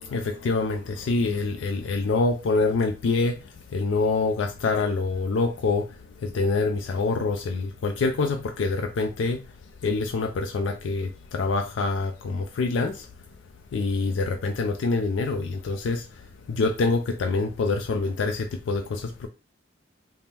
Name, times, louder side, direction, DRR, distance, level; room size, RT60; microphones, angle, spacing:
voice 1, 0.0-3.4 3.7-5.9 6.2-9.4 9.8-13.1 13.7-16.0 16.5-19.3, left 3 dB, 75° left, 0.4 m, -25 dB
4.2 x 2.0 x 3.5 m
head